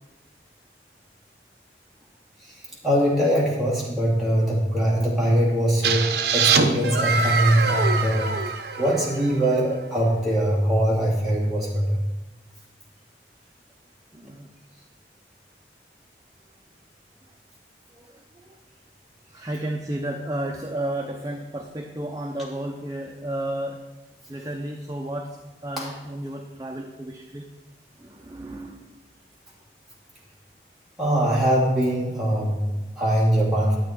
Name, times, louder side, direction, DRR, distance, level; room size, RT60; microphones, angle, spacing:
voice 1, 2.4-8.4 8.8-12.0 25.8-25.9 31.0-33.8, equal, ahead, -7 dB, 2.6 m, -22 dB
sound 1, 5.8-9.6, right 5 dB, 70° right, 0.7 m, -24 dB
voice 2, 14.1-14.5 16.4-16.6 17.9-18.6 19.3-23.8 24.3-27.5 28.0-29.0, right 1 dB, 20° right, 1 dB, 0.6 m, -33 dB
11.0 x 8.4 x 4.5 m, 1.1 s
head